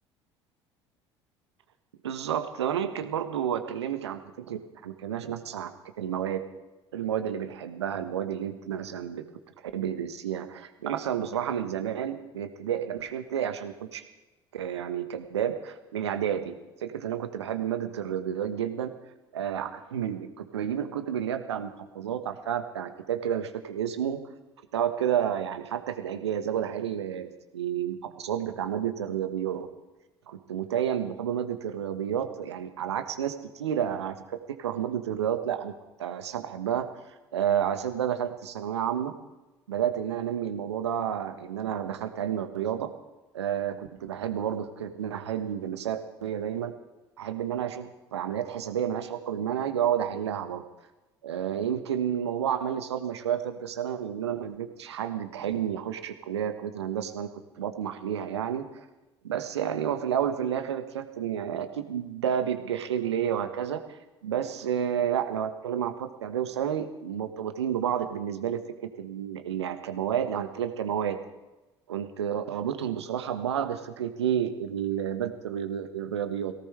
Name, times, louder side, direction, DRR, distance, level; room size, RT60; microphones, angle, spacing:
voice 1, 2.0-5.7 6.0-6.4 6.9-9.2 9.7-14.0 14.5-16.6 16.8-18.9 19.3-24.2 24.7-29.7 30.3-35.7 36.0-36.9 37.3-39.1 39.7-42.9 43.3-46.7 47.2-50.6 51.2-57.3 57.6-58.8 59.2-63.8 64.2-68.6 69.0-71.2 71.9-76.5, right 9 dB, 75° right, 9 dB, 1.4 m, -30 dB
22.5 x 17.5 x 3.3 m, 1.1 s
figure-of-eight pair, 60°, 14 cm